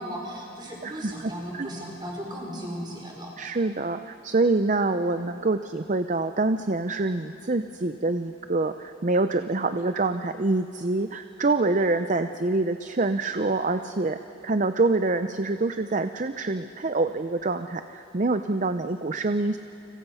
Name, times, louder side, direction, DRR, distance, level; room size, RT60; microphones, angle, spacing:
voice 1, 0.0-3.3, equal, 25° right, -2 dB, 5.5 m, -36 dB
voice 2, 0.8-1.7 3.4-19.6, right 3 dB, 40° right, 9 dB, 0.6 m, -26 dB
30.0 x 26.0 x 5.7 m, 2.7 s
head